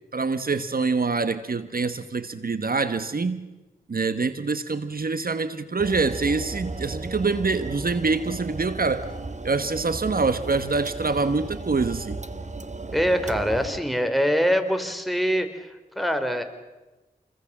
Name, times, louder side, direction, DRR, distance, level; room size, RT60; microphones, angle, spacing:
voice 1, 0.1-3.4 3.9-9.1 9.4-12.2, right 4 dB, 65° right, 1.3 m, -25 dB
sound 1, 5.8-13.8, right 3 dB, 45° right, 1.8 m, -35 dB
voice 2, 12.9-16.4, equal, ahead, 3.6 m, -24 dB
28.5 x 21.5 x 7.4 m
cardioid pair, 45°, 16 cm